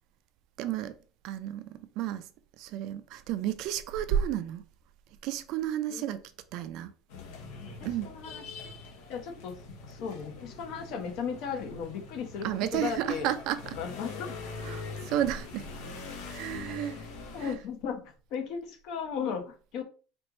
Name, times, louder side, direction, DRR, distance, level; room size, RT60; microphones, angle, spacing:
voice 1, 0.6-0.9 1.2-2.2 2.6-4.6 5.2-6.2 6.5-6.9 7.8-8.1 12.4-13.8 14.6-15.7 16.3-17.0 17.4-17.6, right 11 dB, 60° right, 0.4 m, -32 dB
sound 1, 7.1-17.6, left 4 dB, 80° left, 1.1 m, -43 dB
voice 2, 8.0-8.7 9.1-13.3 13.8-14.3 17.3-19.8, left 6 dB, 60° left, 1.0 m, -36 dB
4.3 x 2.5 x 3.0 m
cardioid pair, 145°, 0 cm